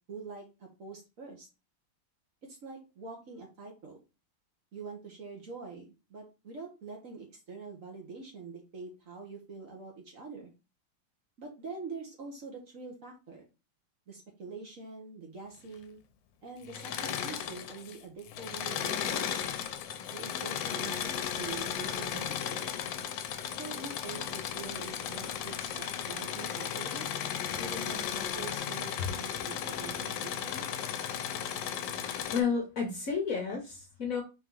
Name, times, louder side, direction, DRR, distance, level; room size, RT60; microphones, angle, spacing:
voice 1, 0.1-1.5 2.4-4.0 4.7-10.5 11.4-13.4 14.1-16.0 16.4-19.4 20.1-22.7 23.5-27.1 27.6-30.8, right 4 dB, 50° right, 1 dB, 1.2 m, -45 dB
Engine / Mechanisms, 16.6-18.0 18.3-32.4, left 9 dB, 75° left, 1.2 m, -35 dB
voice 2, 32.3-34.2, left 6 dB, 55° left, 1 dB, 1.1 m, -31 dB
4.4 x 2.8 x 3.7 m, 0.29 s
omnidirectional pair, 2.1 m